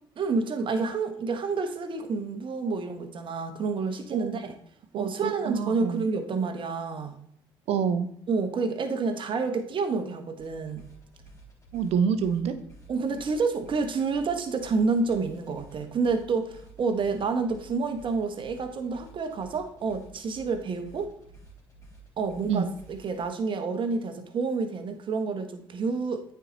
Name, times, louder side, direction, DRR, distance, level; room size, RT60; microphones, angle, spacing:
voice 1, 0.2-4.6 4.9-7.2 8.3-10.8 12.9-21.1 22.2-26.2, right 4 dB, 50° right, 6 dB, 1.4 m, -29 dB
voice 2, 4.9-6.0 7.7-8.1 11.7-12.5 22.5-22.7, right 7 dB, 65° right, 10 dB, 1.0 m, -27 dB
sound 1, 10.4-23.2, right 2 dB, 25° left, 3.5 m, -52 dB
9.0 x 4.8 x 4.0 m, 0.65 s
hypercardioid pair, 60°, 11 cm